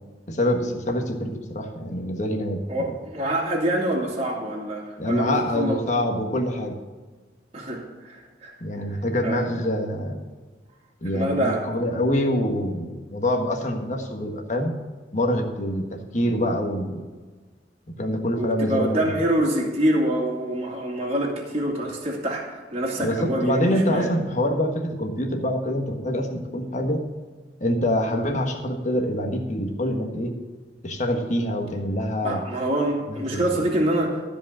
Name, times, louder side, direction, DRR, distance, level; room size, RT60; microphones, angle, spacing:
voice 1, 0.3-2.9 5.0-6.7 8.6-10.2 11.0-14.7 15.1-15.8 16.1-17.0 18.0-19.1 23.0-27.0 27.6-30.3 30.8-32.4 33.1-33.6, left 1 dB, 40° left, 3 dB, 1.5 m, -25 dB
voice 2, 2.7-5.8 7.5-8.5 9.2-9.4 11.0-11.7 18.4-24.1 32.2-34.2, right 1 dB, 35° right, -3 dB, 2.3 m, -26 dB
14.0 x 5.2 x 7.3 m, 1.4 s
head